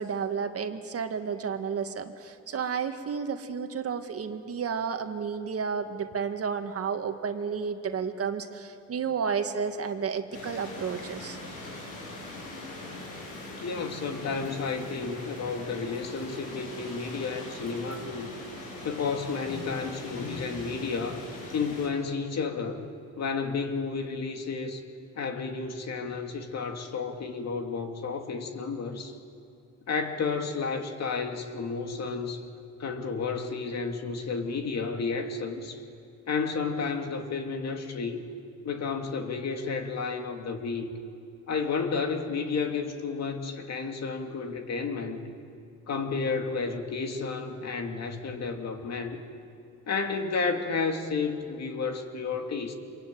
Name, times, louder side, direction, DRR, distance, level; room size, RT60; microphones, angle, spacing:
voice 1, 0.0-11.4, right 6 dB, 50° right, 7 dB, 1.8 m, -32 dB
sound 1, 10.3-21.9, left 2 dB, 90° left, 7.9 m, -41 dB
voice 2, 13.6-18.3 18.8-21.2 21.5-22.9 23.2-24.8 25.2-29.2 29.9-32.5 32.8-35.8 36.3-38.2 38.6-40.9 41.5-45.3 45.9-49.2 49.9-52.7, left 4 dB, 60° left, 4 dB, 2.6 m, -31 dB
26.5 x 22.5 x 9.2 m, 2.6 s
cardioid pair, 90°, 30 cm